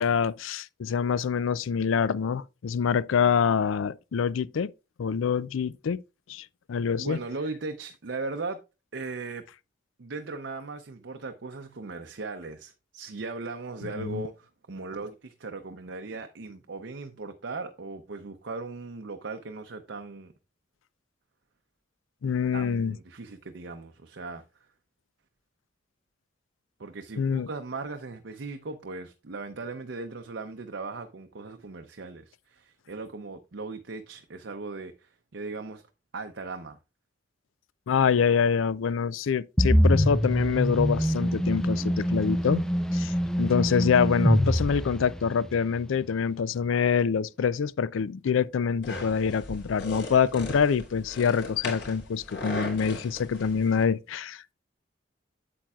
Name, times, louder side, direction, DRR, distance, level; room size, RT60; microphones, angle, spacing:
voice 1, 0.0-4.7 5.0-6.0 6.3-7.2 13.9-14.3 22.2-23.0 27.2-27.5 37.9-42.6 42.9-54.5, left 6 dB, 85° left, 0.4 m, -26 dB
voice 2, 7.0-8.6 8.9-9.4 10.0-20.3 22.5-24.4 26.8-35.8 36.1-36.8, right 3 dB, 65° right, 0.6 m, -38 dB
sound 1, 39.6-45.5, equal, 5° left, 0.4 m, -24 dB
sound 2, 48.8-53.8, left 2 dB, 65° left, 3.4 m, -38 dB
8.4 x 7.7 x 2.3 m
head